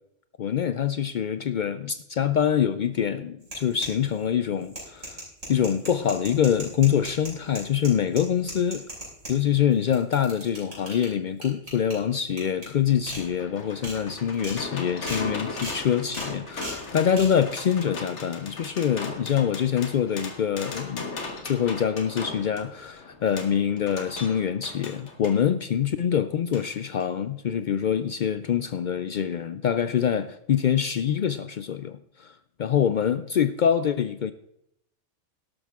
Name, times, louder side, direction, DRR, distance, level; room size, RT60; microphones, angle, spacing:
voice 1, 0.4-5.2 5.5-8.9 9.3-32.3 32.6-34.3, left 8 dB, 80° left, 0.4 m, -25 dB
sound 1, 3.4-4.2 4.6-9.3 9.7-11.1 11.4-11.9 12.4-12.7 13.1-13.2 13.6-13.9 14.3-14.6 15.0-15.2 15.6-15.8 16.1-16.3 16.6-16.8 17.1-17.3, right 1 dB, 50° right, 5.2 m, -37 dB
sound 2, 12.9-25.4 26.5-26.7 27.0-27.1, left 3 dB, 60° left, 1.9 m, -38 dB
13.0 x 12.0 x 3.6 m
omnidirectional pair, 1.4 m